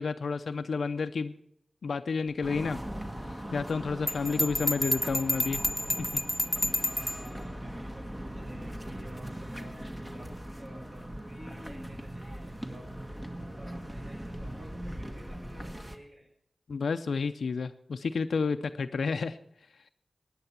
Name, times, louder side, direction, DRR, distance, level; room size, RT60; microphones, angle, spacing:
voice 1, 0.0-1.3 1.8-2.8 3.3-5.6 6.1-6.2 16.7-19.4, left 4 dB, 85° left, 9 dB, 0.5 m, -30 dB
sound 1, 2.4-16.0, equal, 20° right, 1.4 m, -40 dB
Bell, 4.1-7.3, equal, ahead, 0.4 m, -30 dB
voice 2, 4.2-5.3 6.8-12.9 13.6-16.3, equal, 65° right, -2 dB, 6.9 m, -53 dB
16.5 x 9.8 x 5.9 m, 0.71 s
cardioid pair, 50°, 0 cm